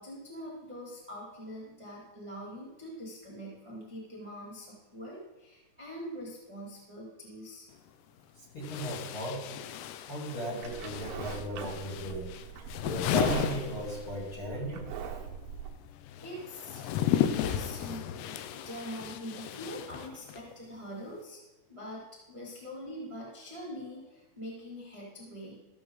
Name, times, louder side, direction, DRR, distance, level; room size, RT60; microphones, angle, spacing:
voice 1, 0.0-7.7 16.2-16.9 17.1-21.4 21.7-25.6, equal, 15° right, -6 dB, 1.2 m, -43 dB
sound 1, 7.7-7.8 8.6-14.4 14.7-20.5, left 10 dB, 85° left, 2.6 m, -34 dB
voice 2, 8.4-9.4 10.1-12.4 12.8-14.9, equal, 40° left, -6 dB, 2.1 m, -36 dB
Livestock farm animals working animals, 10.6-15.7, right 7 dB, 70° right, 2.2 m, -40 dB
14.5 x 7.1 x 3.9 m, 1.1 s
omnidirectional pair, 5.1 m